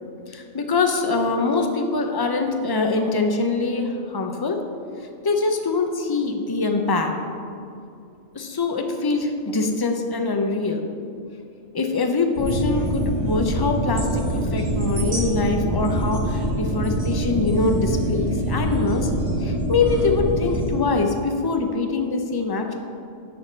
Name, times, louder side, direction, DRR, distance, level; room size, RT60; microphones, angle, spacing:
voice 1, 0.3-4.6 5.2-7.1 8.3-10.9 11.7-19.1 19.4-22.7, left 3 dB, 30° left, 4 dB, 0.4 m, -23 dB
sound 1, 12.4-20.7, right 1 dB, 40° right, 1.9 m, -24 dB
6.9 x 6.1 x 6.5 m, 2.5 s
omnidirectional pair, 1.4 m